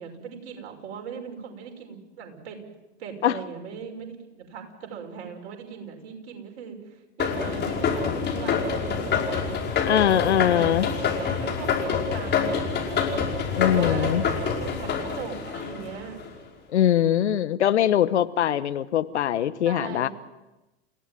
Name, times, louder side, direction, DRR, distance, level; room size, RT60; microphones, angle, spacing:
voice 1, 0.0-2.6 3.0-9.6 10.2-10.7 11.2-13.1 13.6-16.2 19.6-20.1, right 6 dB, 60° right, 3 dB, 6.2 m, -39 dB
sound 1, 7.2-16.3, left 5 dB, 30° left, 5.3 m, -26 dB
voice 2, 9.8-10.9 13.6-14.2 16.7-20.1, left 11 dB, 75° left, 15 dB, 1.2 m, -22 dB
29.0 x 16.5 x 9.4 m, 1.0 s
hypercardioid pair, 90°, 34 cm